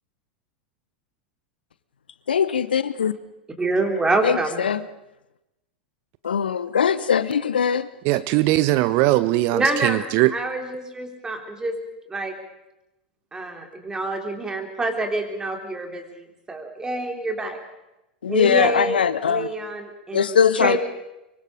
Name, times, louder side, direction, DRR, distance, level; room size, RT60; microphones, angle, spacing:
voice 1, 2.3-3.1 4.2-4.8 6.2-7.9 18.2-19.5 20.1-20.8, left 7 dB, 75° left, 15 dB, 0.9 m, -21 dB
voice 2, 3.6-4.6 9.5-10.0 10.3-11.8 12.1-12.3 13.3-17.6 18.3-20.8, right 2 dB, 15° right, 4 dB, 3.4 m, -26 dB
voice 3, 8.0-10.3, right 17 dB, 45° right, 16 dB, 0.7 m, -20 dB
24.0 x 23.5 x 5.0 m, 0.95 s
figure-of-eight pair, 90°, 5 cm